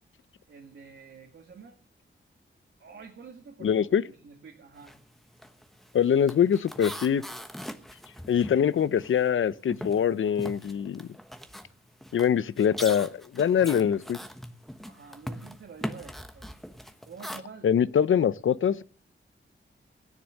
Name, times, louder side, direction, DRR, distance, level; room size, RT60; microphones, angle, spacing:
voice 1, 0.5-1.8 2.8-5.0 14.9-16.5 17.1-17.7, right 5 dB, 70° right, 2.0 m, -48 dB
voice 2, 3.6-4.0 5.9-7.2 8.3-11.1 12.1-14.2 17.6-18.8, left 8 dB, 75° left, 0.7 m, -24 dB
sound 1, 4.8-5.0 5.3-9.4 9.7-17.4, equal, ahead, 1.1 m, -41 dB
17.0 x 10.0 x 6.5 m
wide cardioid pair, 175°, 20 cm